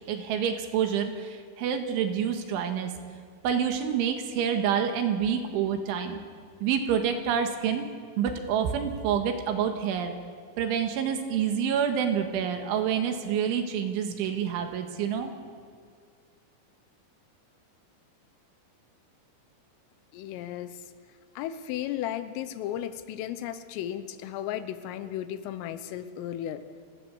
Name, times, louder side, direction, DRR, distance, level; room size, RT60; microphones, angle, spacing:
voice 1, 0.1-2.9 3.4-6.2 6.6-7.9 8.2-10.1 10.6-15.3, right 8 dB, 70° right, 6 dB, 3.9 m, -27 dB
voice 2, 20.1-20.7 21.4-26.6, left 11 dB, 80° left, 12 dB, 3.5 m, -34 dB
30.0 x 17.5 x 7.1 m, 2.1 s
omnidirectional pair, 5.9 m